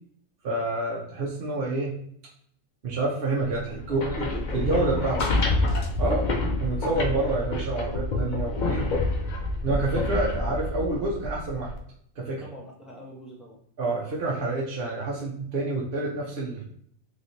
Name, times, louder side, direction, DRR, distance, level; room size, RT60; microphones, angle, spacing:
voice 1, 0.4-2.0 2.8-4.3 4.5-5.2 6.0-6.3 6.6-8.9 9.6-11.7 12.2-12.4 13.8-16.6, right 2 dB, 55° right, -4 dB, 0.8 m, -28 dB
sound 1, 3.8-11.8, left 2 dB, 55° left, 0.5 m, -27 dB
voice 2, 3.9-5.0 6.0-6.3 12.4-13.6, right 1 dB, ahead, -5 dB, 0.9 m, -43 dB
3.2 x 3.1 x 2.7 m, 0.66 s
omnidirectional pair, 1.3 m